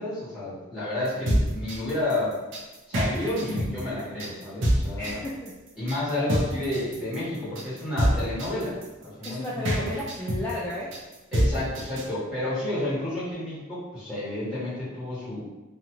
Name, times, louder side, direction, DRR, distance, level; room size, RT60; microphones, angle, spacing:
voice 1, 0.0-2.4 2.9-5.2 5.8-9.9 11.3-15.4, left 1 dB, 5° right, -11 dB, 1.3 m, -30 dB
sound 1, 1.1-12.1, equal, 60° right, 0.6 m, -26 dB
voice 2, 5.0-5.5 9.2-11.0, left 1 dB, 15° left, -5 dB, 0.3 m, -33 dB
2.6 x 2.3 x 2.9 m, 1.2 s
head